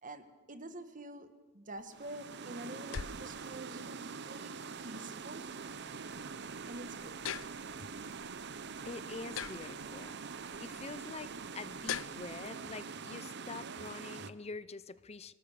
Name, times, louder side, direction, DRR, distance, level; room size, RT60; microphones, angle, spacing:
voice 1, 0.0-4.0 4.2-4.6 4.8-5.5 6.7-7.4, right 1 dB, 40° right, 10 dB, 1.6 m, -47 dB
sound 1, 1.7-12.5, left 8 dB, 80° left, 0.6 m, -46 dB
sound 2, 1.9-14.3, right 5 dB, 55° right, 0.8 m, -44 dB
voice 2, 8.8-10.2 10.6-15.3, left 3 dB, 30° left, 16 dB, 0.6 m, -45 dB
26.5 x 18.5 x 6.7 m, 1.3 s
head